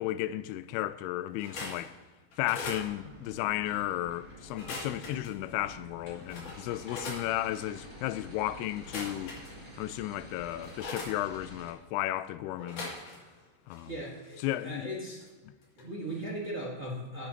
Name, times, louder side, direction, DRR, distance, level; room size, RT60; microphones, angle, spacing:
voice 1, 0.0-1.9 2.4-9.4 9.8-12.9 13.7-13.9 14.4-14.9 15.5-15.6, left 14 dB, 85° left, 2.5 m, -34 dB
sound 1, 1.3-1.9 2.3-2.9 4.4-5.3 5.9-6.0 6.3-7.2 8.8-9.8 10.2-11.1 12.6-13.4 13.7-15.3 15.6-15.8 16.1-16.2, left 2 dB, 55° left, 3.9 m, -41 dB
sound 2, 2.7-11.7, equal, 10° right, 2.2 m, -49 dB
voice 2, 13.8-15.2 15.7-17.3, right 1 dB, 45° right, 0.8 m, -38 dB
16.5 x 9.1 x 2.9 m
omnidirectional pair, 4.6 m